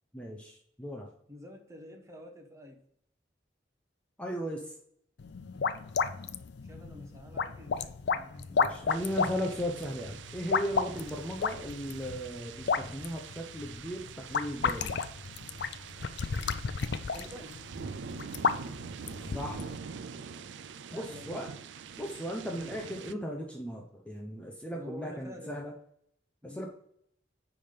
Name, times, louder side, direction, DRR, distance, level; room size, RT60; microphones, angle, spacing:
voice 1, 0.1-1.1 4.2-4.8 8.5-15.0 19.2-19.7 20.9-21.5 22.0-25.7 26.4-26.7, equal, 5° left, 0 dB, 0.6 m, -37 dB
voice 2, 1.3-2.8 6.6-8.9 10.9-11.3 17.1-17.6 20.9-21.4 24.6-25.7 26.4-26.7, left 1 dB, 15° right, 3 dB, 1.0 m, -48 dB
sound 1, 5.2-19.8, left 5 dB, 65° left, 0.4 m, -33 dB
sound 2, 8.9-23.1, right 6 dB, 80° right, 0.4 m, -45 dB
9.8 x 3.4 x 5.2 m, 0.70 s
head